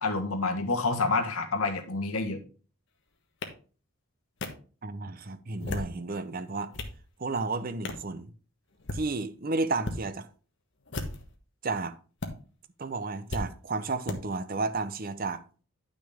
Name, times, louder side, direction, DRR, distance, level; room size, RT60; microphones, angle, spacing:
voice 1, 0.0-2.4, left 3 dB, 75° left, 1.5 m, -28 dB
sound 1, 3.4-3.5 4.4-4.5 5.5-6.0 6.5-7.0 7.8-8.1 8.7-9.0 9.8-10.0 10.8-11.4 12.2-12.3 13.3-13.4 14.1-14.2, left 2 dB, 55° left, 1.3 m, -34 dB
voice 2, 4.8-6.7 7.2-8.3 8.9-10.3 11.6-12.0 12.8-15.4, right 3 dB, 40° right, 0.6 m, -32 dB
10.0 x 6.2 x 3.5 m
head